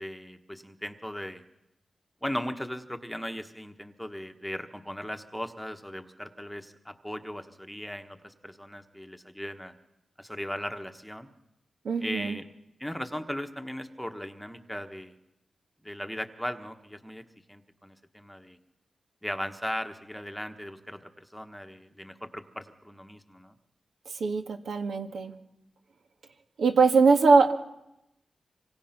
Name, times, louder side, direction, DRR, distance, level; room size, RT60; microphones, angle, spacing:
voice 1, 0.0-1.4 2.2-9.7 10.2-11.3 12.0-12.4 12.8-15.2 15.8-17.2 17.5-18.6 19.2-23.5, equal, ahead, 6 dB, 1.2 m, -38 dB
voice 2, 11.8-12.4 24.1-25.3 26.6-27.6, right 4 dB, 80° right, 5 dB, 2.1 m, -22 dB
26.0 x 25.0 x 5.9 m, 0.87 s
wide cardioid pair, 140°, 0 cm